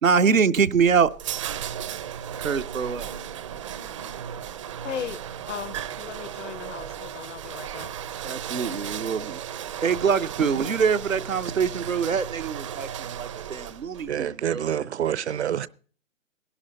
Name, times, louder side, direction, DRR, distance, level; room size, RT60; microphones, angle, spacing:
voice 1, 0.0-1.1 2.4-3.1 8.2-9.4 9.8-14.7, right 6 dB, 85° right, 0.9 m, -24 dB
sound 1, 0.7-14.1, right 9 dB, 25° right, 0.6 m, -35 dB
voice 2, 4.8-5.2 5.5-7.9, left 8 dB, 65° left, 0.9 m, -36 dB
voice 3, 14.1-15.7, right 9 dB, 55° right, 0.7 m, -27 dB
19.0 x 11.5 x 3.9 m
figure-of-eight pair, 130°, 39 cm